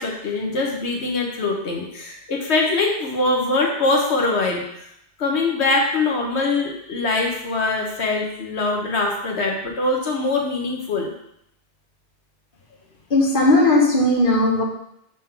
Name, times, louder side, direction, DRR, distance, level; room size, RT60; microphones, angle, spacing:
voice 1, 0.0-4.6 5.2-11.1, left 3 dB, 90° left, 0 dB, 1.4 m, -23 dB
voice 2, 13.1-14.6, left 1 dB, 55° left, -1 dB, 1.4 m, -17 dB
7.0 x 3.8 x 5.8 m, 0.76 s
omnidirectional pair, 1.1 m